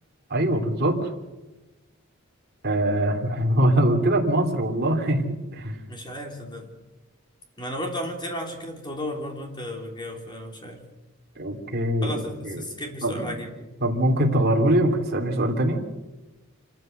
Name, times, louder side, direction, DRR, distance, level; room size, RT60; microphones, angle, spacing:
voice 1, 0.3-1.0 2.6-5.8 11.4-12.2 12.4-12.6 13.0-13.3 13.8-15.8, right 1 dB, 45° right, 1 dB, 3.0 m, -23 dB
voice 2, 5.9-6.7 7.6-10.8 12.0-13.7, left 1 dB, 20° left, 2 dB, 3.3 m, -34 dB
26.5 x 13.5 x 8.0 m, 1.1 s
head